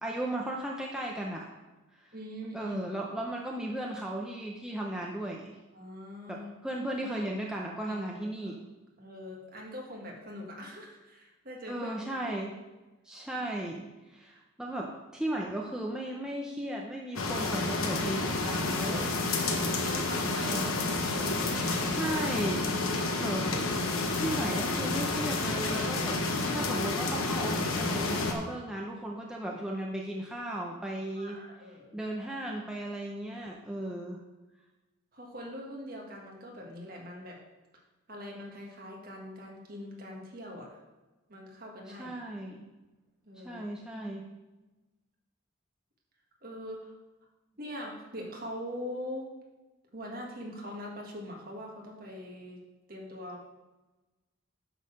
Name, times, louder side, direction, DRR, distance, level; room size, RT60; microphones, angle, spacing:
voice 1, 0.0-1.5 2.0-2.1 2.5-5.6 6.3-8.6 11.7-12.5 13.0-19.0 20.5-20.8 21.8-22.7 23.2-23.5 24.2-26.2 26.5-31.4 31.9-34.2 41.9-42.6 43.4-44.2, right 1 dB, 5° right, -2 dB, 0.6 m, -36 dB
voice 2, 2.1-2.8 5.7-6.5 7.9-8.5 9.0-12.5 13.3-13.5 18.8-22.0 31.1-32.0 35.1-37.4 38.1-40.8 41.3-42.1 43.2-43.6 46.4-46.9 47.6-49.3 49.9-52.6 52.9-53.4, left 1 dB, 45° right, -1 dB, 1.7 m, -43 dB
sound 1, 17.2-28.3, left 3 dB, 90° left, 1.1 m, -30 dB
9.1 x 3.9 x 6.4 m, 1.1 s
head